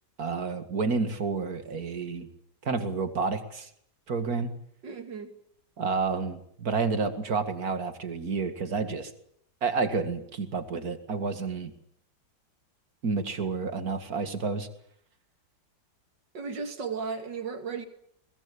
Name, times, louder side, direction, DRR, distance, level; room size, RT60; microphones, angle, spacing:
voice 1, 0.2-2.3 2.6-3.7 4.1-4.5 5.8-9.1 9.6-11.7 13.0-14.7, right 4 dB, 55° right, 2.6 m, -30 dB
voice 2, 4.8-5.3 16.3-17.9, right 5 dB, 70° right, 3.1 m, -35 dB
22.5 x 21.0 x 8.6 m
omnidirectional pair, 2.0 m